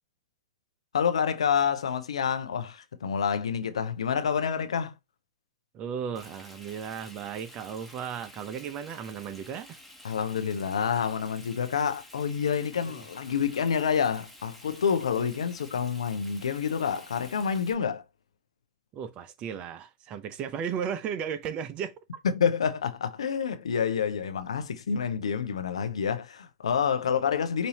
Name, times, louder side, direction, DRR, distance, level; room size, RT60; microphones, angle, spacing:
voice 1, 0.9-5.0 10.0-18.0 22.2-27.7, left 7 dB, 85° left, 0.7 m, -28 dB
voice 2, 5.7-9.8 12.9-13.0 15.2-15.3 18.9-21.9, right 7 dB, 35° right, 0.7 m, -35 dB
Frying (food), 6.1-17.7, left 1 dB, ahead, 1.4 m, -51 dB
5.2 x 2.7 x 2.8 m
hypercardioid pair, 110°, 3 cm